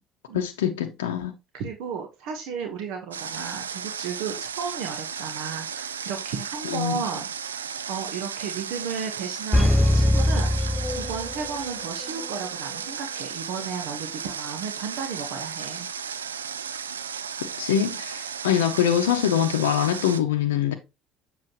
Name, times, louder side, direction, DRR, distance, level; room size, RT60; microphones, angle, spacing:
voice 1, 0.3-1.3 6.6-7.0 17.4-20.7, left 9 dB, 80° left, 0.7 m, -24 dB
voice 2, 1.5-10.5 10.9-15.9, right 6 dB, 65° right, 1.2 m, -34 dB
Water, 3.1-20.2, right 7 dB, 90° right, 0.4 m, -35 dB
sound 1, 9.5-11.7 12.0-12.1, left 1 dB, 15° left, 0.4 m, -21 dB
7.6 x 5.6 x 3.0 m
hypercardioid pair, 60°, 0 cm